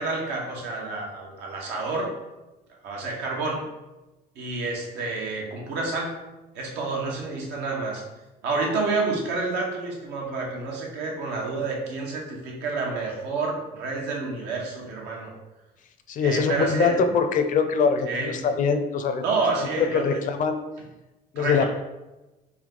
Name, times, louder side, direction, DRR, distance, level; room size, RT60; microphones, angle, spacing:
voice 1, 0.0-2.1 2.8-3.6 4.3-6.2 6.5-8.0 8.4-15.3 16.2-17.1 18.1-18.4 19.2-20.2 21.4-21.7, right 3 dB, 85° right, -1 dB, 1.0 m, -29 dB
voice 2, 16.1-19.2 19.6-20.6 21.3-21.6, left 5 dB, 50° left, 8 dB, 0.5 m, -23 dB
3.6 x 2.7 x 3.7 m, 1.1 s
cardioid pair, 110°, 17 cm